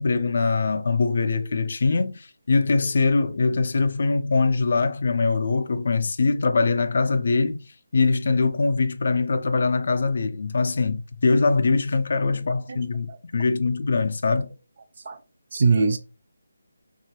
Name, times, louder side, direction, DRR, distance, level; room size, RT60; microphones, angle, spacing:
voice 1, 0.0-7.6 7.9-14.5, left 4 dB, 50° left, 0.4 m, -22 dB
voice 2, 15.5-16.0, right 4 dB, 45° right, 0.5 m, -22 dB
2.8 x 2.4 x 2.8 m
figure-of-eight pair, 150°, 0 cm